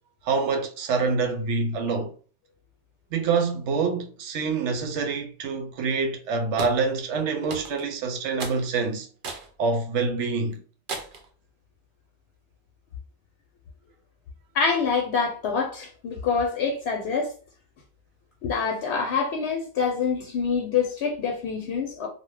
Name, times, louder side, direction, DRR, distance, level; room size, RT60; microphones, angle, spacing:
voice 1, 0.2-2.1 3.1-9.1 9.6-10.6, right 4 dB, 80° right, 0.9 m, -26 dB
sound 1, 6.6-6.8 7.5-7.9 8.4-8.6 9.2-9.5 10.0-10.1 10.9-11.3, right 4 dB, 55° right, 0.7 m, -35 dB
voice 2, 14.5-17.3 18.4-22.1, left 5 dB, 75° left, 0.8 m, -26 dB
2.6 x 2.1 x 3.2 m
omnidirectional pair, 1.2 m